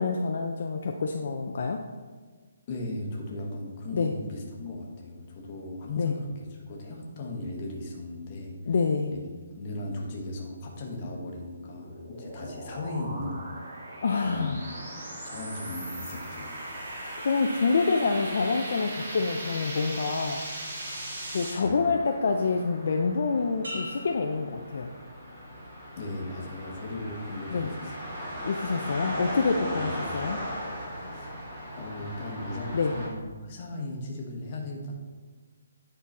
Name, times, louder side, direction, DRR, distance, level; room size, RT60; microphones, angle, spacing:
voice 1, 0.0-1.8 3.9-4.1 6.0-6.1 8.7-9.1 14.0-14.6 17.2-20.4 21.3-24.9 27.5-27.7 28.4-30.4 32.7-32.9, left 4 dB, 45° left, 3 dB, 0.4 m, -27 dB
voice 2, 2.7-8.6 9.1-9.2 9.6-13.5 14.2-14.6 15.2-16.5 21.6-21.8 26.0-28.1 29.8-30.0 31.1-31.3 31.7-34.9, left 2 dB, 25° left, -1 dB, 0.9 m, -37 dB
sound 1, 11.4-21.5, right 1 dB, 35° right, 1.7 m, -39 dB
sound 2, 14.6-33.1, equal, 15° right, 1.7 m, -40 dB
sound 3, 23.6-25.4 25.9-26.4, equal, 85° right, 2.1 m, -42 dB
9.4 x 3.9 x 4.2 m, 1.4 s
hypercardioid pair, 180°, 0 cm